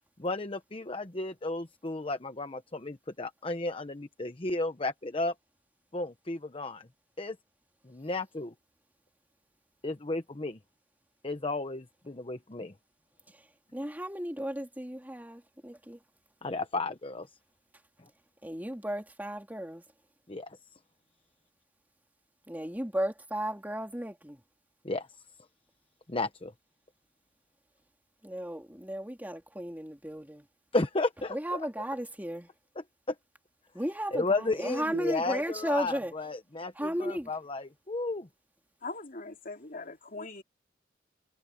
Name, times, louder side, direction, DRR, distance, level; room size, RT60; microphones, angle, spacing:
voice 1, 0.2-5.3 5.9-6.9 7.2-7.4 7.8-8.5 9.8-10.6 11.2-12.7 16.4-17.3 18.0-18.1 20.3-20.6 24.8-25.1 26.1-26.5 30.7-31.7 32.8-33.1 34.1-38.3, left 2 dB, 30° left, 0.9 m, -33 dB
voice 2, 13.7-16.0 18.4-19.8 22.5-24.4 28.2-30.5 31.3-32.5 33.7-36.1 36.8-37.3, equal, 10° right, 3.0 m, -34 dB
voice 3, 38.8-40.4, left 3 dB, 45° left, 3.0 m, -41 dB
head